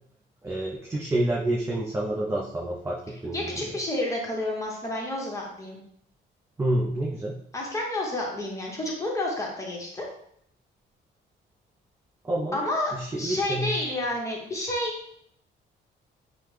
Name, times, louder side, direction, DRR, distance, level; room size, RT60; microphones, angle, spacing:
voice 1, 0.4-3.8 6.6-7.4 12.2-12.6 12.9-13.7, right 1 dB, 15° right, -3 dB, 0.4 m, -28 dB
voice 2, 3.3-5.8 7.5-10.0 12.5-12.9 13.2-15.2, left 1 dB, 15° left, -2 dB, 1.0 m, -30 dB
3.2 x 2.1 x 3.3 m, 0.68 s
cardioid pair, 90°, 20 cm